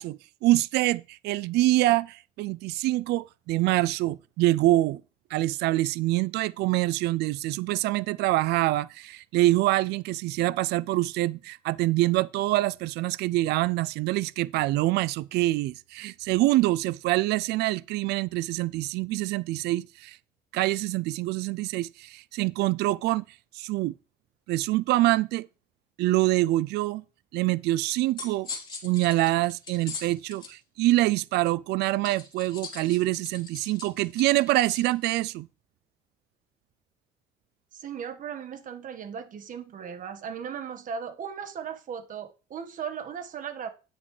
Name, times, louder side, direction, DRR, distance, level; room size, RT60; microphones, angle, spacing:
voice 1, 0.0-5.0 5.3-20.2 20.5-23.2 23.5-23.9 24.5-25.5 26.0-27.0 27.3-28.5 28.8-35.5, right 17 dB, 80° right, 0.4 m, -25 dB
sound 1, 27.9-30.5 32.0-34.9, left 4 dB, 25° left, 3.7 m, -41 dB
voice 2, 37.7-43.7, right 7 dB, 50° right, 1.6 m, -37 dB
9.8 x 8.3 x 3.3 m
cardioid pair, 110°, 17 cm